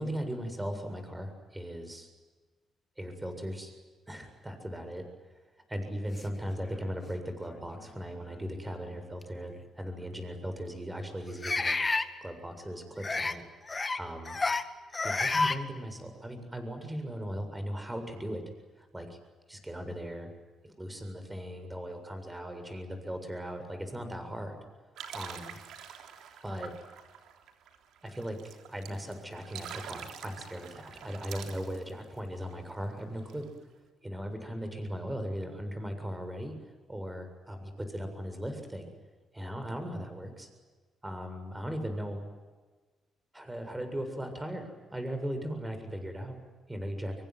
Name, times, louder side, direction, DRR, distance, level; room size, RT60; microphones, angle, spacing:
voice 1, 0.0-2.1 3.0-3.8 4.1-5.0 5.7-13.4 14.0-14.4 15.0-18.4 18.8-19.2 19.5-20.3 20.6-24.6 25.1-25.6 26.4-26.7 28.0-33.5 34.0-36.5 36.9-38.9 39.3-40.5 41.0-42.2 43.3-46.4 46.7-47.1, equal, 10° right, 7 dB, 7.3 m, -38 dB
sound 1, 6.6-6.7 7.5-7.6 9.2-9.3 11.4-12.1 13.0-13.4 13.7-14.0 14.3-14.6 14.9-15.6, left 3 dB, 25° left, 1.9 m, -29 dB
sound 2, 25.0-32.5 32.9-33.0 33.2-33.5, right 8 dB, 80° right, 3.5 m, -46 dB
25.0 x 23.5 x 9.6 m, 1.3 s
cardioid pair, 90°, 0 cm